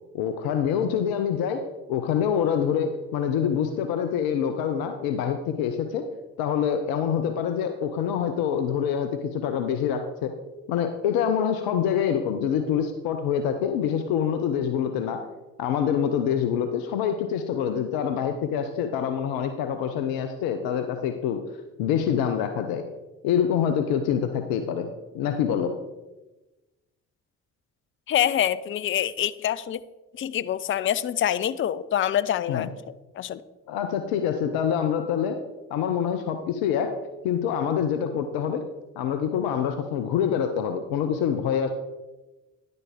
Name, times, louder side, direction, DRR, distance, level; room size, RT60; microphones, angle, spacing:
voice 1, 0.1-1.6 1.9-6.1 6.4-10.3 10.7-15.2 15.6-21.4 21.8-22.8 23.2-25.7 32.5-32.7 33.7-35.4 35.7-36.9 37.2-38.6 39.0-41.7, left 8 dB, 70° left, 7 dB, 0.7 m, -26 dB
voice 2, 28.1-29.8 30.1-32.7 33.2-33.4, left 10 dB, 35° left, 16 dB, 0.5 m, -25 dB
10.5 x 7.9 x 3.6 m, 1.1 s
hypercardioid pair, 40°, 38 cm